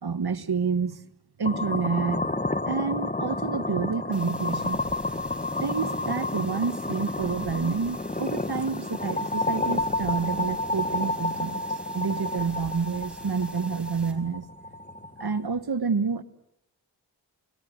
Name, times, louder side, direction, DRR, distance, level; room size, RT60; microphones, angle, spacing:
voice 1, 0.0-1.0 1.4-2.3 2.7-4.8 5.6-11.6 11.9-14.4 15.2-16.2, right 5 dB, 60° right, 13 dB, 1.4 m, -28 dB
sound 1, 1.4-15.5, left 2 dB, 20° left, 1.3 m, -30 dB
sound 2, 4.1-14.1, right 1 dB, ahead, 4.8 m, -49 dB
sound 3, 4.6-6.4 7.2-8.9 9.8-11.6 12.4-14.2, right 2 dB, 35° right, 5.6 m, -51 dB
28.0 x 20.5 x 7.9 m, 0.79 s
cardioid pair, 45°, 43 cm